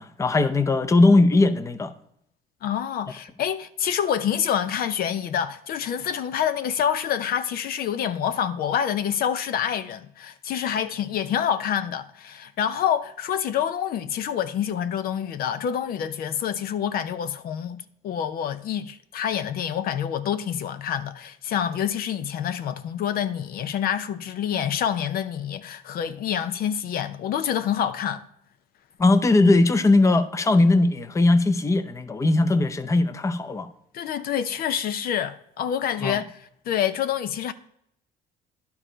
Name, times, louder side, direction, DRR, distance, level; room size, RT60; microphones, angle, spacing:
voice 1, 0.0-1.9 29.0-33.7 36.0-36.2, left 2 dB, 20° left, 0.6 m, -19 dB
voice 2, 2.6-28.2 33.9-37.5, left 9 dB, 60° left, 0.6 m, -27 dB
11.0 x 4.7 x 5.0 m
cardioid pair, 110°, 17 cm